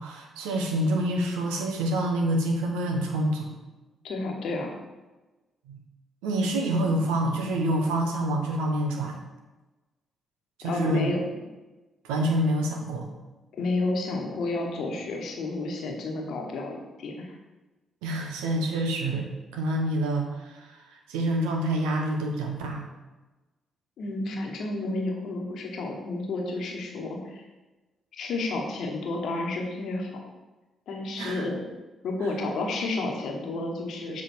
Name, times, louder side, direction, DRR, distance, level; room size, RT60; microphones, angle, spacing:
voice 1, 0.0-3.6 5.7-5.8 6.2-9.2 10.6-11.1 12.0-13.1 18.0-22.9 31.2-31.5, right 1 dB, 85° right, 2 dB, 0.9 m, -27 dB
voice 2, 4.0-4.8 10.6-11.2 13.6-17.3 24.0-27.4 28.1-30.1 30.9-31.6 32.0-34.2, left 2 dB, 70° left, 1 dB, 1.2 m, -31 dB
7.1 x 3.6 x 4.5 m, 1.1 s
hypercardioid pair, 45°, 0 cm